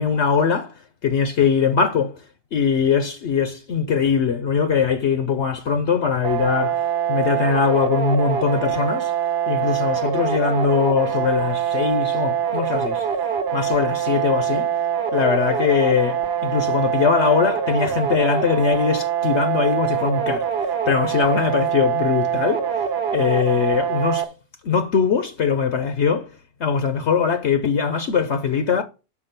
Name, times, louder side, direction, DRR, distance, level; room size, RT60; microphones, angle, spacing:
voice 1, 0.0-2.2 2.5-6.8 7.1-9.1 9.5-13.0 13.5-14.7 15.1-22.8 23.1-24.3 24.6-26.3 26.6-28.8, left 6 dB, 60° left, 0.9 m, -21 dB
sound 1, 6.2-24.2, right 8 dB, 50° right, 1.1 m, -24 dB
5.9 x 5.0 x 6.6 m
omnidirectional pair, 1.5 m